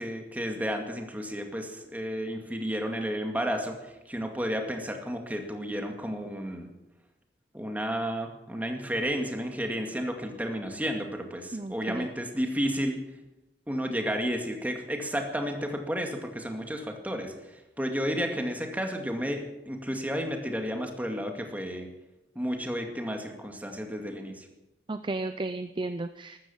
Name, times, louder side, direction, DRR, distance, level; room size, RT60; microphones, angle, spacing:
voice 1, 0.0-6.7 7.5-13.0 13.7-21.9 22.4-24.5, equal, 10° right, 3 dB, 2.1 m, -32 dB
voice 2, 11.5-12.1 24.9-26.4, right 2 dB, 30° right, 10 dB, 0.5 m, -34 dB
14.0 x 13.5 x 7.2 m, 0.97 s
head